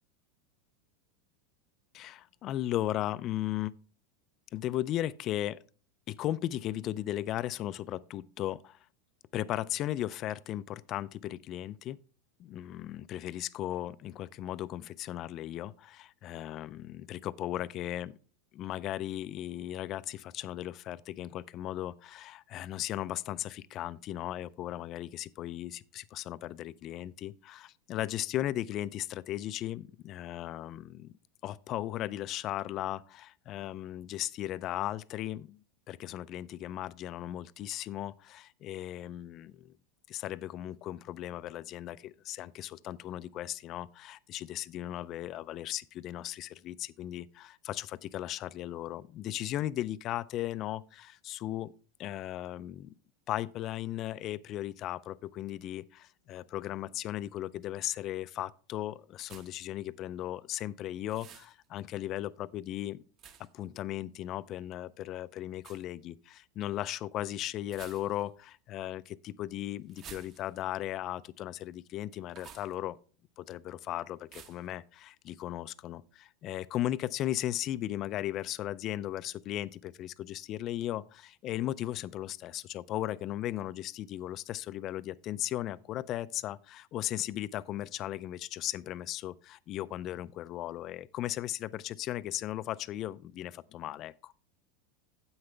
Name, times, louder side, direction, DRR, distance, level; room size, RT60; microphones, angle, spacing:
voice 1, 1.9-3.7 4.5-5.6 6.1-8.8 9.3-12.0 12.4-18.1 18.5-31.1 31.4-39.7 40.1-51.7 52.0-52.9 53.3-63.0 63.5-73.0 73.4-94.3, left 13 dB, 35° left, 0.4 m, -36 dB
sound 1, 59.2-59.7 61.1-61.5 63.2-63.6 65.6-65.8 67.6-68.4 69.9-70.7 72.3-72.8 74.3-74.7, right 7 dB, 35° right, 1.0 m, -51 dB
9.7 x 7.8 x 3.3 m
supercardioid pair, 145°, 0 cm